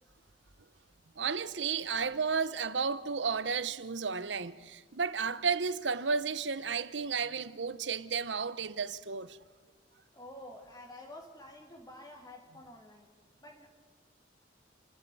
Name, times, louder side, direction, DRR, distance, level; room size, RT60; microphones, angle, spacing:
voice 1, 1.2-9.4, right 5 dB, 75° right, 0.9 m, -33 dB
voice 2, 10.1-13.1 13.4-13.7, left 1 dB, 20° left, 1.9 m, -49 dB
29.0 x 12.0 x 9.4 m
head